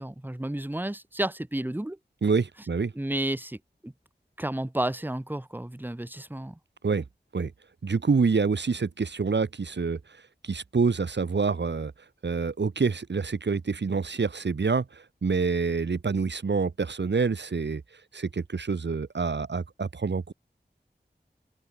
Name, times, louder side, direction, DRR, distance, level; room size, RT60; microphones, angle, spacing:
voice 1, 0.0-2.0 2.9-3.9 4.4-6.6, right 1 dB, 10° right, 0.9 m, -32 dB
voice 2, 2.2-2.9 6.8-7.0 7.3-7.5 7.8-10.0 10.4-11.9 12.2-17.8 18.1-20.3, right 4 dB, 85° right, 0.8 m, -27 dB
open air
wide cardioid pair, 50°, 18 cm